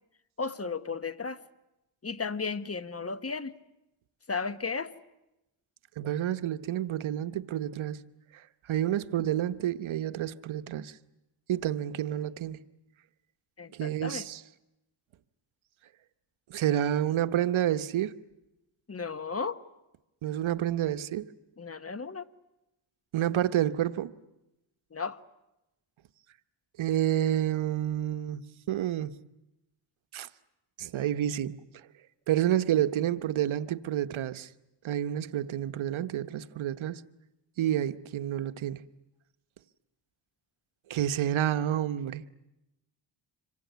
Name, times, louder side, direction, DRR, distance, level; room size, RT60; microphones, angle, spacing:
voice 1, 0.4-1.4 2.0-3.5 4.3-4.9 13.6-14.3 18.9-19.6 21.6-22.2 24.9-25.2, left 4 dB, 30° left, 1.2 m, -34 dB
voice 2, 6.0-8.0 8.7-10.9 11.5-12.6 13.7-14.4 16.5-18.1 20.2-21.2 23.1-24.1 26.8-29.2 30.1-30.3 30.8-31.6 32.3-34.5 34.8-37.0 37.6-38.8 40.9-42.2, right 11 dB, 85° right, 1.0 m, -29 dB
26.5 x 23.5 x 9.3 m
cardioid pair, 85°, 46 cm